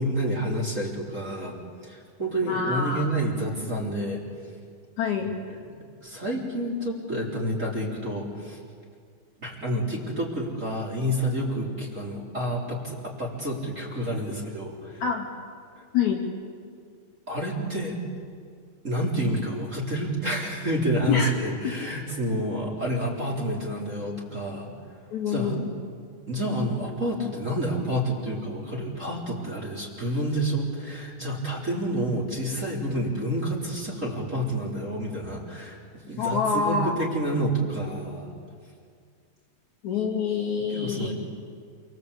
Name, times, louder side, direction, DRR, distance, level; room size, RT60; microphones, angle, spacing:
voice 1, 0.0-1.6 1.8-4.2 6.0-8.6 9.4-15.0 17.3-18.0 18.8-24.7 25.3-25.6 26.3-38.3 40.7-41.1, equal, 20° right, -3 dB, 4.0 m, -29 dB
voice 2, 2.5-3.1 5.0-5.4 15.0-15.3 15.9-16.2 21.1-21.3 21.6-21.9 25.1-25.7 36.2-37.1 39.8-41.1, left 5 dB, 55° left, -1 dB, 3.9 m, -26 dB
28.0 x 25.0 x 8.5 m, 2.1 s
omnidirectional pair, 4.3 m